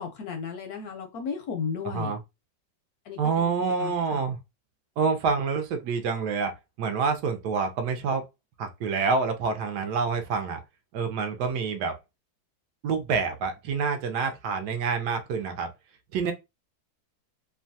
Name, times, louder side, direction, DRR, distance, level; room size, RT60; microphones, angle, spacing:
voice 1, 0.0-2.1 3.1-4.2, left 6 dB, 70° left, 0.9 m, -35 dB
voice 2, 1.8-2.2 3.2-4.4 5.0-8.2 8.6-10.6 10.9-12.0 12.8-15.7 16.1-16.3, right 5 dB, 75° right, 1.0 m, -27 dB
3.0 x 2.2 x 2.6 m
omnidirectional pair, 2.1 m